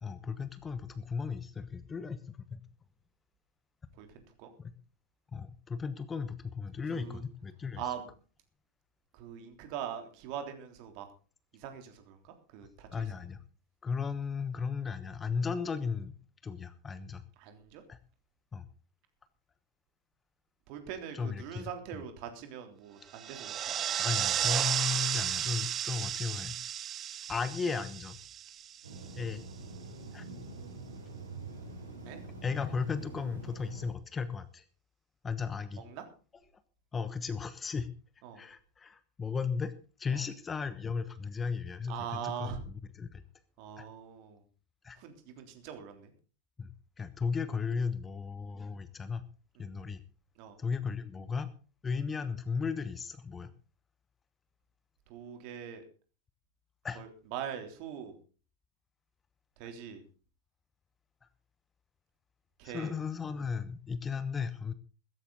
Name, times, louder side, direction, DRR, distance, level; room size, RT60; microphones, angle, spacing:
voice 1, 0.0-2.6 4.6-4.7 5.3-7.8 12.9-13.4 13.8-16.1 16.4-17.2 17.9-18.0 18.5-18.7 21.1-21.7 24.0-26.6 27.3-28.2 29.1-29.4 30.1-30.3 32.4-34.6 35.2-35.8 36.9-37.9 38.3-39.7 40.0-42.0 42.2-42.5 43.0-43.2 43.8-43.9 44.8-45.0 46.6-46.7 47.0-49.2 49.6-50.0 50.6-51.5 51.8-53.5 56.8-57.0 62.6-64.7, left 5 dB, 15° left, 14 dB, 1.1 m, -35 dB
voice 2, 3.9-4.5 6.8-7.2 7.8-8.1 9.1-11.1 11.5-13.1 17.4-17.8 20.7-23.7 32.0-32.2 35.8-36.0 38.2-38.4 40.1-40.2 41.9-42.6 43.6-44.4 44.9-46.1 49.5-49.7 50.3-50.6 55.1-55.8 56.9-58.2 59.6-60.0 62.6-62.9, right 9 dB, 45° right, 6 dB, 3.3 m, -42 dB
sound 1, 23.1-29.0, right 10 dB, 30° right, 0.9 m, -33 dB
sound 2, 28.8-33.9, right 3 dB, 75° right, 5.4 m, -45 dB
15.5 x 14.0 x 4.0 m, 0.37 s
figure-of-eight pair, 90°, 0 cm